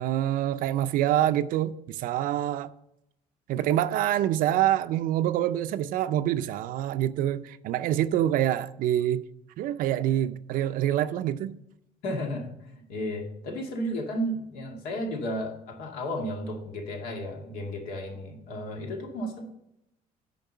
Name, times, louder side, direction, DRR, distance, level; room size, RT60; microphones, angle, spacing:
voice 1, 0.0-2.7 3.5-9.2 9.6-11.6, right 12 dB, 70° right, 0.5 m, -26 dB
voice 2, 12.0-19.5, equal, 80° left, 2.2 m, -33 dB
9.1 x 5.2 x 6.6 m
cardioid pair, 140°, 15 cm